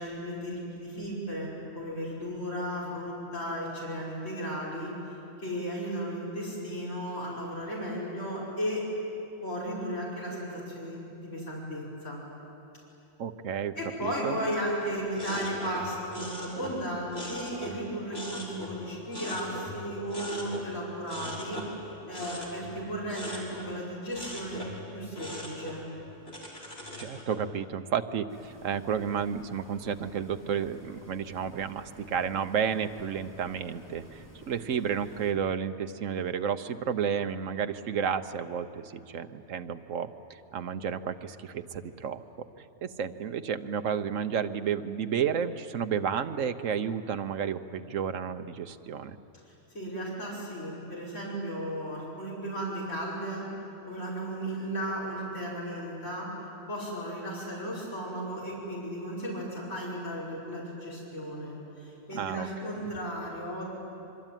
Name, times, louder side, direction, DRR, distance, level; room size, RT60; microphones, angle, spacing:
voice 1, 0.0-4.9 5.4-8.8 9.4-12.3 13.7-24.6 24.9-25.8 49.7-53.5 53.9-56.3 56.7-63.7, equal, 70° left, -6 dB, 5.9 m, -35 dB
voice 2, 13.2-13.7 14.0-14.4 27.0-42.2 42.6-49.2 62.1-62.8, right 7 dB, 85° right, 9 dB, 1.3 m, -32 dB
sound 1, 15.1-17.9 18.1-19.8 20.1-20.7 21.1-23.8 24.1-24.8 25.2-27.4, left 1 dB, 50° left, 4.4 m, -40 dB
sound 2, 28.3-35.3, equal, 15° left, 3.1 m, -52 dB
25.0 x 24.0 x 9.1 m, 2.9 s
omnidirectional pair, 1.3 m